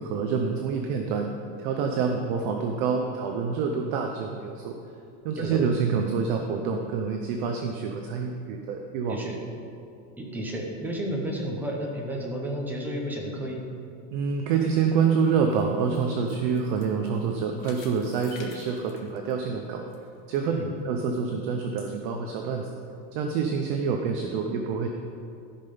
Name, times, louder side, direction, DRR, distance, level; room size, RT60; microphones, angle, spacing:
voice 1, 0.0-1.3 1.6-4.8 5.2-9.2 14.1-19.8 20.3-20.6 20.8-22.7 23.1-24.9, right 5 dB, 35° right, 3 dB, 0.4 m, -27 dB
voice 2, 5.3-5.7 9.1-9.4 10.2-13.6 20.4-20.7, equal, 5° right, -1 dB, 0.8 m, -32 dB
sound 1, 15.0-20.0 20.3-20.4 21.0-21.1, left 6 dB, 85° left, 1.7 m, -52 dB
14.0 x 5.6 x 5.4 m, 2.6 s
supercardioid pair, 170°, 50 cm